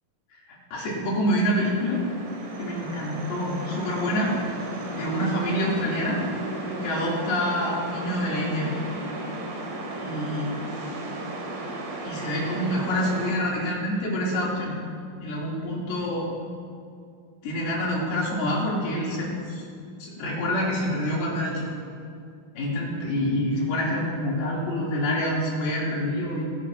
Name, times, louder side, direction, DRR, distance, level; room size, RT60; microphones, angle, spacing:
voice 1, 0.7-2.0 2.6-4.4 4.9-6.3 6.8-8.7 10.0-10.5 12.0-14.8 15.2-16.3 17.4-19.6 20.0-21.7 22.6-26.4, equal, 90° left, -5 dB, 4.7 m, -27 dB
sound 1, 1.6-13.3, right 2 dB, 75° right, 3.6 m, -35 dB
23.5 x 11.5 x 2.7 m, 2.3 s
omnidirectional pair, 4.3 m